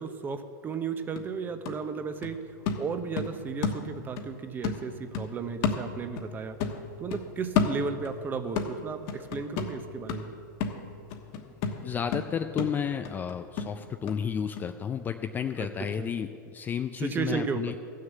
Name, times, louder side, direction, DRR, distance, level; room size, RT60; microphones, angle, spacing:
voice 1, 0.0-2.4 2.8-6.6 7.0-10.3 15.6-15.7 16.0-16.1 17.0-17.8, right 5 dB, 20° right, 9 dB, 0.8 m, -34 dB
sound 1, 0.7-0.8 1.2-4.3 4.6-6.3 6.6-8.2 8.6-14.2 14.6-14.7, left 5 dB, 45° left, 1.2 m, -32 dB
voice 2, 11.8-17.8, left 7 dB, 15° left, 7 dB, 0.4 m, -32 dB
14.5 x 6.6 x 8.2 m, 2.4 s
hypercardioid pair, 140°, 11 cm